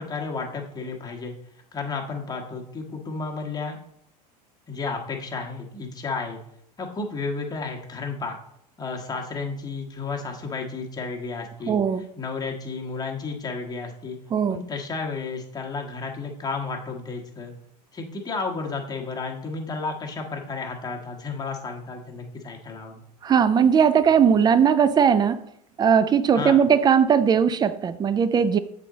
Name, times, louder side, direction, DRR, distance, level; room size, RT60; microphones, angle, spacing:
voice 1, 0.0-1.3 1.7-3.8 4.7-6.4 6.8-8.4 8.8-11.8 12.2-14.2 14.5-17.5 17.9-23.0 26.3-26.6, left 4 dB, 20° left, 0 dB, 1.4 m, -32 dB
voice 2, 11.7-12.1 14.3-14.6 23.2-25.4 25.8-28.6, right 7 dB, 20° right, 14 dB, 0.4 m, -19 dB
7.6 x 4.1 x 3.7 m, 0.72 s
hypercardioid pair, 85°, 21 cm